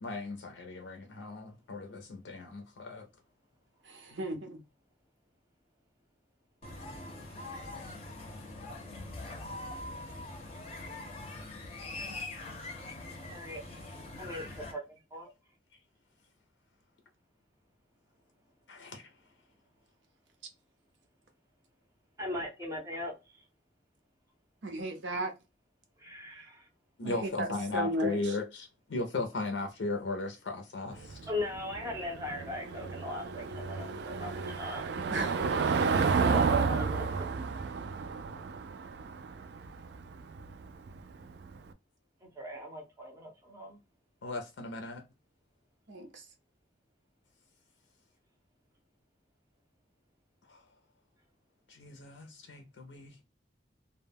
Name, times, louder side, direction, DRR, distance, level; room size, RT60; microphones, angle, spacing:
voice 1, 0.0-3.1 18.7-19.1 27.0-31.2 44.2-45.0 50.5-50.6 51.7-53.2, left 3 dB, 80° left, 0.5 m, -37 dB
voice 2, 3.9-4.6 24.6-25.3 26.3-26.5 27.0-27.5 27.7-28.2 35.1-35.4 45.9-46.2, right 1 dB, 80° right, 0.7 m, -35 dB
sound 1, 6.6-14.7, left 2 dB, 30° left, 0.5 m, -43 dB
voice 3, 13.3-13.6 14.2-14.8 15.1-15.3 22.2-23.4 26.0-26.7 31.3-34.9 36.2-37.3 42.2-43.8, left 1 dB, 15° right, 0.5 m, -39 dB
Car passing by / Engine, 30.9-41.6, right 5 dB, 65° right, 0.3 m, -32 dB
2.1 x 2.1 x 3.3 m
head